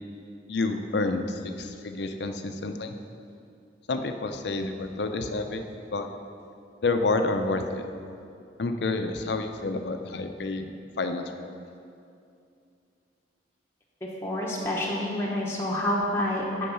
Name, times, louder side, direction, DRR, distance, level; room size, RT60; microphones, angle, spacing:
voice 1, 0.5-2.9 3.9-5.6 5.9-6.1 6.8-7.8 8.6-11.5, left 3 dB, 65° left, 6 dB, 0.5 m, -29 dB
voice 2, 14.2-16.7, left 1 dB, 15° left, -4 dB, 0.8 m, -28 dB
8.5 x 4.7 x 5.5 m, 2.5 s
head